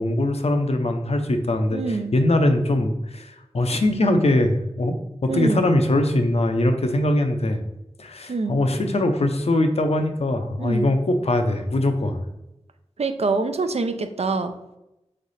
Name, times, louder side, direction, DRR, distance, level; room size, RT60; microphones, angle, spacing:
voice 1, 0.0-7.6 8.0-12.2, left 1 dB, 70° left, 6 dB, 0.6 m, -22 dB
voice 2, 1.7-2.1 5.3-5.7 8.3-8.6 10.6-10.9 13.0-14.5, right 3 dB, 70° right, 8 dB, 0.4 m, -25 dB
3.7 x 3.3 x 4.0 m, 0.90 s
wide cardioid pair, 50°, 11 cm